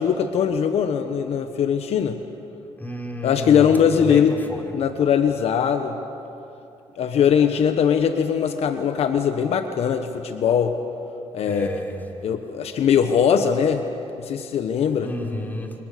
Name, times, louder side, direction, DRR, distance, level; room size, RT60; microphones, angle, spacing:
voice 1, 0.0-2.2 3.2-4.4 4.7-6.0 7.0-10.8 11.3-11.7 12.2-13.8 14.2-15.1, left 7 dB, 70° left, 7 dB, 1.3 m, -20 dB
voice 2, 2.8-4.6 11.4-12.0 15.0-15.7, left 1 dB, 15° left, 2 dB, 4.9 m, -31 dB
29.5 x 25.0 x 6.8 m, 2.8 s
cardioid pair, 80°, 11 cm